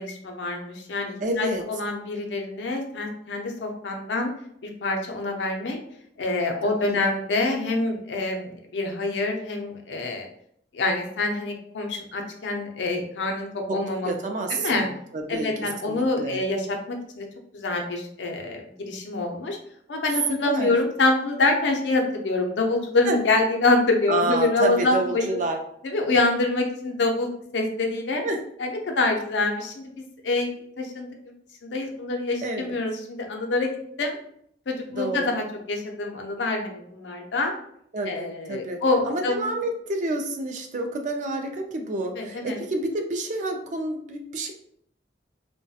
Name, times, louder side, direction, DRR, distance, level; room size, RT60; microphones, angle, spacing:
voice 1, 0.0-4.3 4.6-5.8 6.2-10.3 10.7-14.1 14.5-14.9 15.3-17.3 17.5-19.6 19.9-25.4 25.8-28.2 28.6-29.9 30.2-30.5 30.8-31.1 31.6-34.2 34.7-37.5 38.1-39.5 42.2-42.6, left 2 dB, 85° left, 3 dB, 0.5 m, -26 dB
voice 2, 1.2-1.7 6.9-7.0 13.7-14.9 15.1-16.4 20.3-20.7 23.1-23.2 24.1-25.6 28.2-28.4 32.4-32.8 34.9-35.3 37.9-44.5, right 2 dB, 45° right, 4 dB, 0.3 m, -29 dB
2.3 x 2.1 x 2.7 m, 0.69 s
head